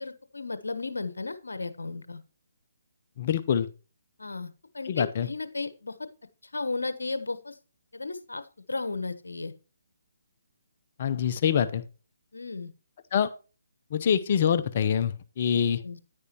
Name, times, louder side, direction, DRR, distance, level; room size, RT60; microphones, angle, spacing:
voice 1, 0.0-2.2 4.2-6.1 6.5-7.6 7.9-9.5 12.3-12.7 15.8-16.0, left 3 dB, 80° left, 12 dB, 1.2 m, -34 dB
voice 2, 3.2-3.7 4.9-5.3 11.0-11.8 13.1-13.3 13.9-15.8, left 8 dB, 45° left, 12 dB, 0.9 m, -25 dB
9.7 x 9.7 x 3.0 m, 0.33 s
figure-of-eight pair, 145°, 0 cm